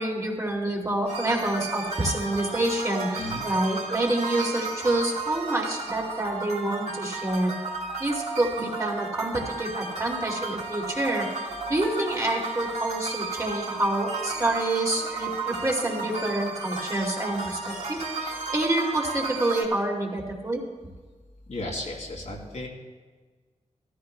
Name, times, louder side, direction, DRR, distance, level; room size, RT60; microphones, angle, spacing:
voice 1, 0.0-7.5 8.0-11.3 11.7-20.6, right 1 dB, 25° right, -2 dB, 2.4 m, -27 dB
sound 1, 1.1-19.6, right 3 dB, 70° right, 2.3 m, -33 dB
voice 2, 21.5-22.7, left 1 dB, 70° left, -3 dB, 2.9 m, -34 dB
17.5 x 14.0 x 2.2 m, 1.4 s
wide cardioid pair, 105°, 12 cm